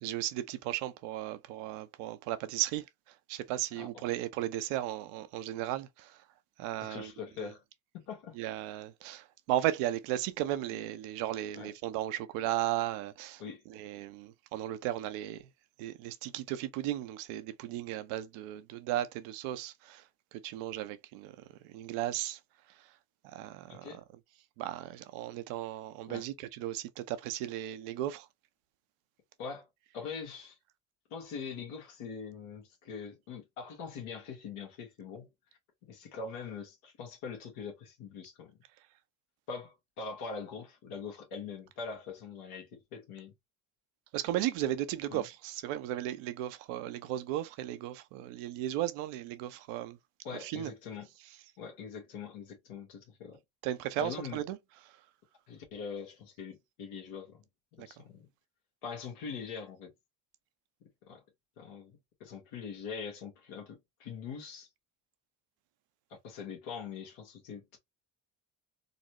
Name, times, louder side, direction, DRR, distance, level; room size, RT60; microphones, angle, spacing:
voice 1, 0.0-2.9 3.3-6.1 6.6-7.1 8.4-13.4 13.7-15.4 15.8-20.0 20.3-21.3 21.6-22.4 23.3-23.9 24.6-28.3 44.1-50.0 50.4-50.7 53.6-54.6 57.8-57.9, right 13 dB, 85° right, 0.7 m, -35 dB
voice 2, 6.8-7.6 7.9-8.4 11.5-11.7 13.4-13.6 23.7-24.0 26.1-26.3 29.4-29.7 29.9-30.6 31.1-35.3 35.8-38.6 39.5-43.3 45.1-45.2 50.2-51.1 51.6-53.4 54.0-54.4 55.5-57.4 57.7-58.3 58.8-59.9 61.1-61.2 61.6-64.7 66.1-67.8, left 5 dB, 85° left, 1.3 m, -43 dB
4.0 x 2.0 x 2.8 m
supercardioid pair, 65°, 49 cm